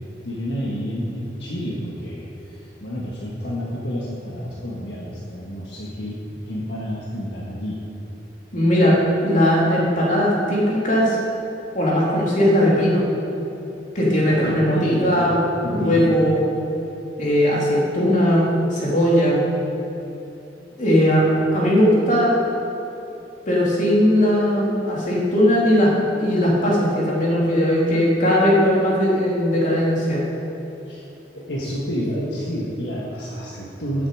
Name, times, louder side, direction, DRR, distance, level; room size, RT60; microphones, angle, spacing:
voice 1, 0.2-7.8 14.3-15.3 15.6-16.2 21.3-21.4 30.8-31.0 31.3-34.1, equal, 65° left, -5 dB, 1.6 m, -29 dB
voice 2, 8.5-11.2 11.7-13.0 13.9-15.4 15.7-16.4 17.2-18.4 18.7-19.4 20.8-21.3 21.5-22.3 23.5-30.2, equal, 45° left, -5 dB, 3.0 m, -18 dB
15.5 x 8.1 x 4.9 m, 3.0 s
head